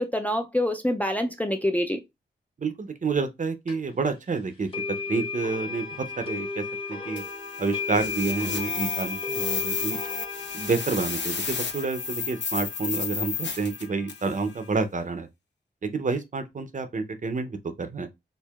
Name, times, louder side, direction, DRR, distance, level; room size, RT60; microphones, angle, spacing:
voice 1, 0.0-2.0, left 1 dB, 10° left, 0.4 m, -26 dB
voice 2, 2.6-4.7 5.1-5.9 6.2-6.6 6.9-7.2 7.6-10.0 10.5-15.3 15.8-18.1, right 4 dB, 45° right, 0.6 m, -29 dB
sound 1, 3.7-3.8 4.7-14.8, left 4 dB, 30° left, 0.9 m, -35 dB
sound 2, 7.2-14.4, left 5 dB, 80° left, 0.8 m, -32 dB
4.5 x 2.7 x 2.3 m
wide cardioid pair, 125°, 18 cm